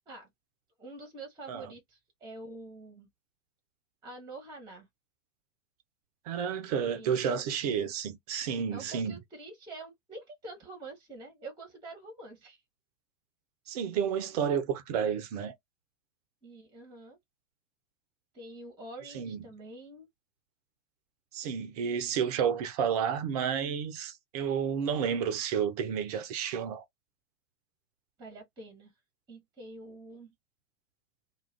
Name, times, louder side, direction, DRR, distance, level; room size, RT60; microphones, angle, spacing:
voice 1, 0.8-3.1 4.0-4.9 6.9-7.2 8.7-12.6 16.4-17.2 18.3-20.1 28.2-28.9 29.3-30.3, right 2 dB, 10° right, 0.8 m, -46 dB
voice 2, 6.3-9.2 13.7-15.5 19.1-19.5 21.3-26.8, right 7 dB, 30° right, 0.4 m, -31 dB
2.3 x 2.2 x 3.1 m
figure-of-eight pair, 100°, 43 cm